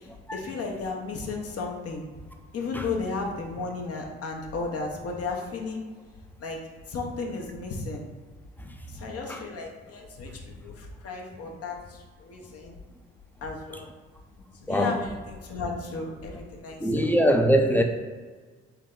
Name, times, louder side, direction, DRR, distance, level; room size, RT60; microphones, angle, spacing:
voice 1, 0.0-2.0 2.5-5.8 6.4-6.6 6.9-8.0 8.9-12.8 13.4-13.9 14.6-17.1, left 4 dB, 50° left, 0.9 m, -34 dB
voice 2, 14.7-15.0 16.8-17.8, equal, 5° left, 0.5 m, -22 dB
3.8 x 2.2 x 3.8 m
hypercardioid pair, 55°, 30 cm